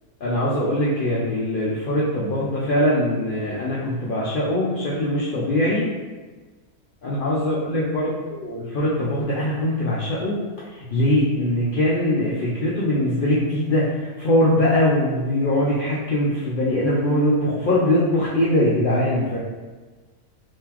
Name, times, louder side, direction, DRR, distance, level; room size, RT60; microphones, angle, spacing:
voice 1, 0.2-5.9 7.0-10.4 10.7-19.4, left 1 dB, 75° left, -7 dB, 0.4 m, -22 dB
3.7 x 2.7 x 2.9 m, 1.3 s
omnidirectional pair, 1.6 m